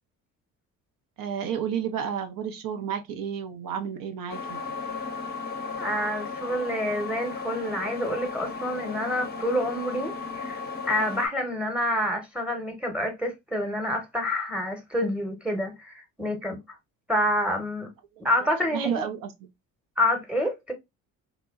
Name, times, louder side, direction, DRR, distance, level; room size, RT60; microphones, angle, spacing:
voice 1, 1.2-4.6 18.2-19.5, right 8 dB, 55° right, 0.6 m, -32 dB
sound 1, 4.3-11.3, left 4 dB, 25° left, 0.6 m, -35 dB
voice 2, 5.8-10.6 10.9-16.8 17.1-17.9 18.2-19.1 20.0-20.7, left 1 dB, 5° right, 0.9 m, -28 dB
2.9 x 2.1 x 2.2 m
hypercardioid pair, 55°, 42 cm